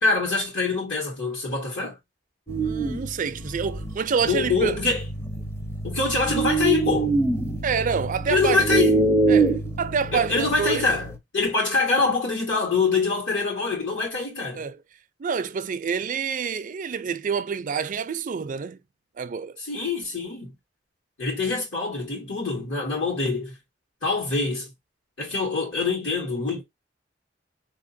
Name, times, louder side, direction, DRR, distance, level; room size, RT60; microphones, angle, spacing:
voice 1, 0.0-2.0 4.3-5.0 5.8-7.1 8.3-9.0 10.1-11.1 11.3-14.6 19.6-20.5 21.2-23.5 24.0-24.7 25.2-26.6, left 4 dB, 70° left, 1.7 m, -24 dB
sound 1, 2.5-11.2, right 3 dB, 15° left, 0.6 m, -25 dB
voice 2, 2.6-4.8 7.6-8.7 9.3-10.9 14.6-14.8 15.2-18.8 19.2-19.6, right 6 dB, 45° right, 0.4 m, -27 dB
4.0 x 2.9 x 2.6 m
head